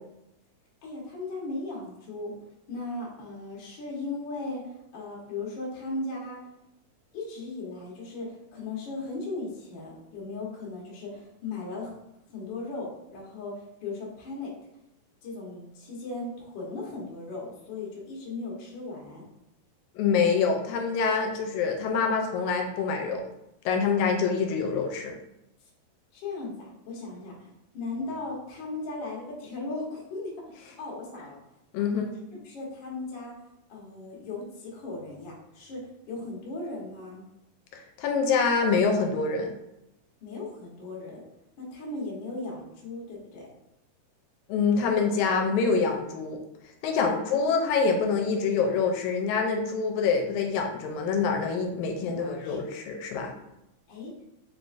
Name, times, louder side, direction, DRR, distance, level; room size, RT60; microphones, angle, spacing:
voice 1, 0.8-2.3 2.7-6.4 7.1-11.9 12.3-14.5 15.2-19.3 26.1-27.5 27.7-31.4 31.8-32.2 32.4-33.3 33.7-37.2 40.2-41.2 41.6-43.5 47.0-47.2 52.0-52.6 53.9-54.1, left 3 dB, 60° left, -3 dB, 1.2 m, -37 dB
voice 2, 20.0-23.2 23.7-25.2 31.7-32.0 37.7-39.5 44.5-46.4 46.8-53.3, left 5 dB, 80° left, 3 dB, 1.9 m, -26 dB
4.6 x 3.7 x 2.4 m, 0.85 s
omnidirectional pair, 3.4 m